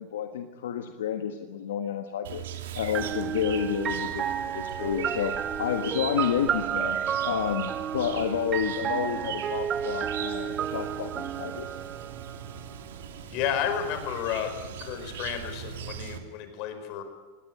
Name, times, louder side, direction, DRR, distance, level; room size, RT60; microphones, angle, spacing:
voice 1, 0.0-2.4 2.7-7.0 7.2-11.7, left 9 dB, 80° left, 7 dB, 1.4 m, -30 dB
Chirp tweet, 2.2-16.2, right 8 dB, 80° right, 2.5 m, -40 dB
sound 1, 2.9-12.7, right 9 dB, 35° right, 0.9 m, -32 dB
voice 2, 13.3-14.5 14.8-17.0, left 8 dB, 55° left, 7 dB, 5.2 m, -31 dB
20.0 x 17.0 x 9.9 m, 1.4 s
hypercardioid pair, 105°, 0 cm